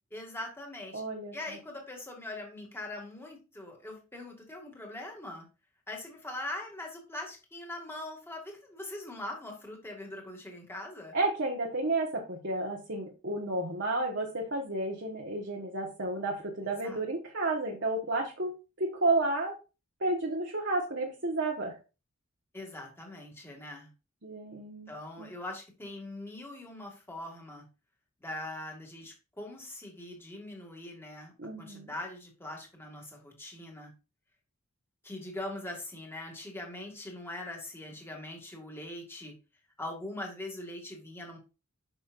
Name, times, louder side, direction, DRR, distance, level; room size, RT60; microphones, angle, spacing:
voice 1, 0.1-1.0 1.3-5.5 5.9-11.1 16.8-17.0 22.5-23.9 24.9-27.6 28.2-31.3 31.6-33.9 35.0-39.3 39.8-41.4, left 1 dB, 10° left, 1 dB, 2.1 m, -42 dB
voice 2, 0.9-1.3 11.1-18.5 18.8-19.5 20.0-21.7 24.2-24.9 25.2-25.3 31.4-31.9, right 2 dB, 55° right, 0 dB, 1.4 m, -31 dB
8.7 x 6.2 x 2.6 m, 0.31 s
head